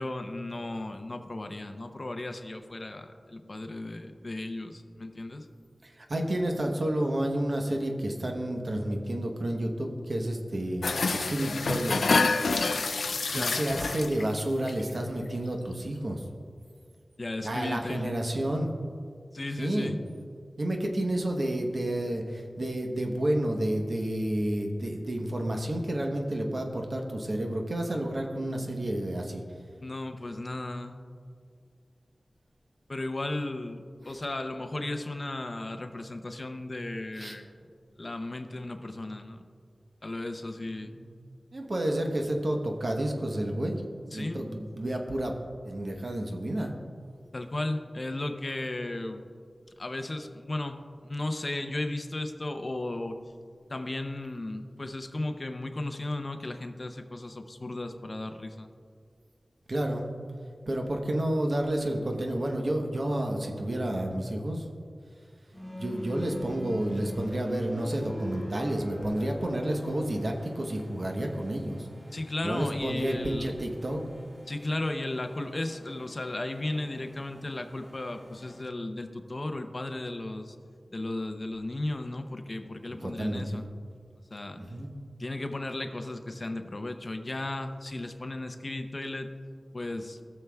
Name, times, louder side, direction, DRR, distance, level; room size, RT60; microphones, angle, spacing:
voice 1, 0.0-5.5 13.3-13.6 17.2-18.2 19.3-20.0 29.8-31.0 32.9-37.5 38.0-39.5 40.0-40.9 44.1-44.4 47.3-49.2 49.8-53.2 53.7-58.7 72.1-73.5 74.5-80.6 80.9-83.7 84.3-84.6 85.2-89.3 89.7-90.2, left 2 dB, 40° left, 6 dB, 0.6 m, -35 dB
voice 2, 5.8-12.0 13.3-16.2 17.4-18.7 19.6-19.9 20.6-29.4 37.2-37.3 40.7-41.0 41.5-43.8 44.1-45.3 45.6-46.7 59.7-60.1 60.7-64.6 65.8-71.9 72.4-74.0 82.9-83.6 84.6-84.9, right 1 dB, 50° right, 2 dB, 1.0 m, -30 dB
sound 1, 10.8-14.4 14.7-15.0 15.3-15.4, left 3 dB, 90° left, 0.3 m, -27 dB
sound 2, 65.5-78.6, equal, 30° right, 2.5 m, -44 dB
17.5 x 6.8 x 2.3 m, 2.1 s
wide cardioid pair, 75°, 0 cm